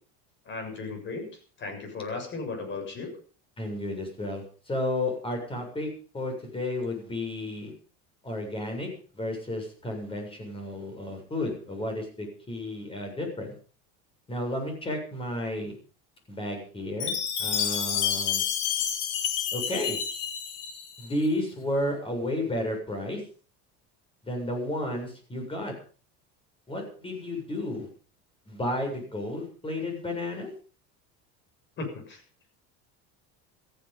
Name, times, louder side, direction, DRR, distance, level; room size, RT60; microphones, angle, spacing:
voice 1, 0.5-1.3 1.6-3.1 31.8-32.2, left 3 dB, 35° left, 5 dB, 7.2 m, -35 dB
voice 2, 3.6-7.7 8.2-8.9 9.1-13.5 14.3-15.7 16.3-18.4 19.5-20.0 21.0-23.2 24.2-25.7 26.7-27.9 28.5-30.5, left 1 dB, 15° left, 4 dB, 7.4 m, -32 dB
Chime, 17.0-21.1, left 8 dB, 70° left, 3.6 m, -29 dB
15.0 x 15.0 x 5.5 m, 0.41 s
cardioid pair, 140°, 32 cm